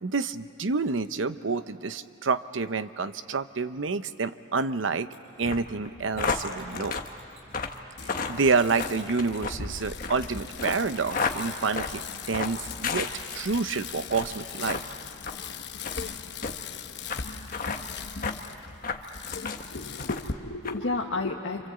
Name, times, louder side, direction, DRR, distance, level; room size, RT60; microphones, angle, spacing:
voice 1, 0.0-5.1 5.4-7.0 8.0-14.8, right 4 dB, 75° right, 12 dB, 0.8 m, -28 dB
Mechanisms, 5.1-5.2 6.1-7.7 8.2-11.7 13.5-14.3, right 2 dB, 35° right, 4.4 m, -51 dB
sound 1, 5.4-13.7 14.0-14.3 14.7-14.8 15.2-15.4 15.8-16.0 16.4-16.5 17.1-17.2 17.5-17.8 18.2-18.4 18.8-19.6 20.0-20.3 20.6-20.8, left 4 dB, 45° left, 1.3 m, -32 dB
Bicycle, 8.0-20.3, left 5 dB, 60° left, 1.0 m, -39 dB
voice 2, 19.7-21.7, left 3 dB, 80° left, 0 dB, 1.3 m, -32 dB
27.5 x 26.5 x 8.1 m, 2.6 s
head